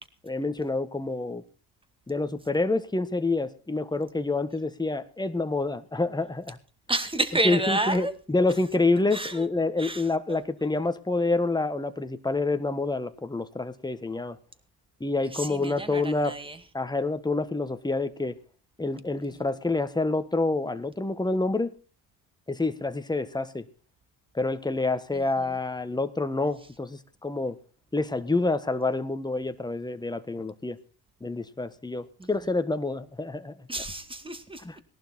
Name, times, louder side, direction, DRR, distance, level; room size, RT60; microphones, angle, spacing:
voice 1, 0.2-1.4 2.1-6.6 7.4-14.4 15.0-16.4 16.7-18.4 18.8-21.7 22.5-23.6 24.3-27.6 27.9-30.8 31.2-33.5 34.6-34.8, left 3 dB, 10° left, 1.4 m, -27 dB
voice 2, 6.9-8.1 9.1-9.4 9.8-10.0 10.3-10.4 15.3-16.6 32.2-32.3 33.7-34.8, right 2 dB, 10° right, 2.2 m, -30 dB
18.5 x 11.5 x 4.3 m
supercardioid pair, 75°, 42 cm